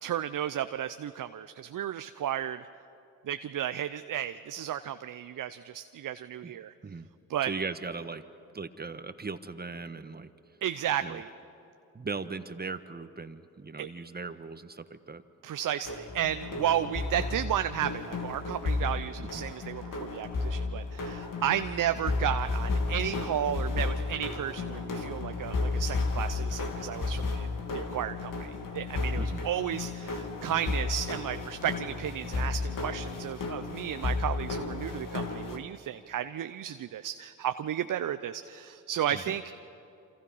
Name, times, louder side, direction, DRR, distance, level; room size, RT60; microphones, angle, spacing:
voice 1, 0.0-2.7 3.3-6.7 7.3-7.5 10.6-11.3 13.8-13.9 15.4-27.5 27.7-39.4, right 10 dB, 55° right, 10 dB, 0.8 m, -33 dB
voice 2, 7.4-8.2 8.5-10.3 11.0-11.2 11.9-15.2 19.2-19.4 29.1-29.4 39.1-39.3, right 4 dB, 25° right, 11 dB, 1.4 m, -38 dB
sound 1, 15.8-35.6, left 3 dB, 60° left, 2.6 m, -33 dB
28.0 x 26.0 x 5.7 m, 2.8 s
supercardioid pair, 50°, 37 cm